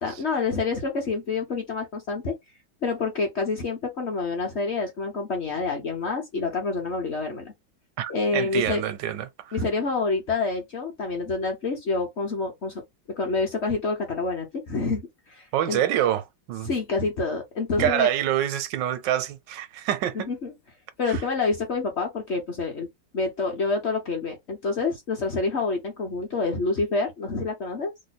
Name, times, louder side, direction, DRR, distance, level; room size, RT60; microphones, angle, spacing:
voice 1, 0.0-2.4 2.8-7.5 8.1-8.8 9.5-12.8 13.2-15.0 15.3-15.8 16.6-18.1 20.1-20.5 21.0-22.9 23.1-27.9, left 3 dB, 50° left, 0.9 m, -27 dB
voice 2, 8.0-9.6 15.5-16.7 17.8-20.3 21.1-21.2, right 11 dB, 80° right, 1.3 m, -26 dB
3.1 x 2.1 x 4.1 m
omnidirectional pair, 1.9 m